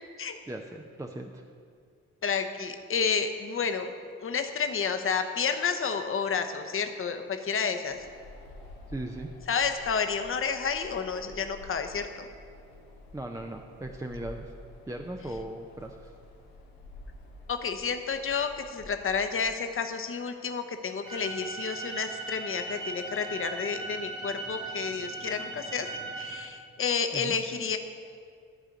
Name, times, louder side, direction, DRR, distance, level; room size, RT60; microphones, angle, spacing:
voice 1, 0.5-1.4 8.9-9.3 13.1-14.5 14.9-16.1 27.1-27.4, right 1 dB, 10° right, 3 dB, 0.6 m, -38 dB
voice 2, 2.2-3.9 4.2-8.1 9.5-12.2 17.5-25.9 26.2-27.8, left 5 dB, 35° left, 6 dB, 0.9 m, -30 dB
Wind, 7.9-19.5, left 2 dB, 80° left, 1.0 m, -49 dB
sound 1, 21.0-26.4, right 2 dB, 85° right, 1.9 m, -38 dB
12.0 x 4.9 x 6.7 m, 2.2 s
figure-of-eight pair, 40°, 39 cm